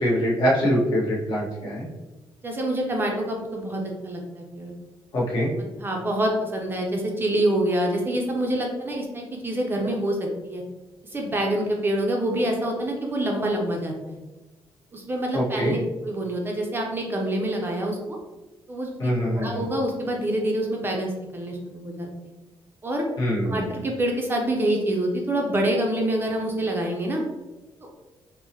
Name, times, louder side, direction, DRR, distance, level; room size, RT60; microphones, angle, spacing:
voice 1, 0.0-1.9 5.1-5.5 15.3-15.7 19.0-19.6 23.2-23.8, equal, 55° left, -5 dB, 1.1 m, -24 dB
voice 2, 2.4-4.7 5.8-10.6 11.1-14.2 14.9-15.8 16.0-18.2 18.7-22.3 22.8-23.1 23.5-27.2 27.8-28.0, right 1 dB, 25° right, 1 dB, 0.5 m, -26 dB
4.5 x 2.0 x 2.8 m, 1.1 s
cardioid pair, 150°, 9 cm